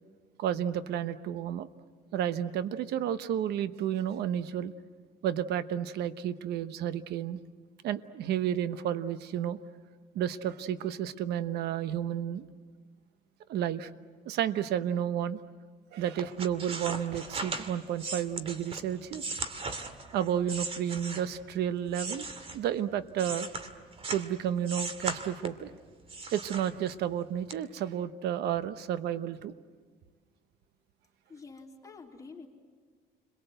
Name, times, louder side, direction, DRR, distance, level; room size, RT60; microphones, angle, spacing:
voice 1, 0.4-1.7 2.1-4.7 5.2-7.4 7.8-9.6 10.1-12.5 13.5-13.9 14.2-15.4 15.9-19.3 20.1-22.3 22.5-23.5 24.1-25.7 26.3-29.5, right 10 dB, 75° right, 12 dB, 1.1 m, -31 dB
sound 1, 16.2-21.5 21.9-24.3 24.6-25.7 26.1-27.1 27.5-27.6, right 3 dB, 35° right, 2.3 m, -38 dB
voice 2, 31.3-32.5, left 4 dB, 20° left, -1 dB, 3.8 m, -48 dB
30.0 x 22.5 x 8.0 m, 1.5 s
cardioid pair, 110°, 17 cm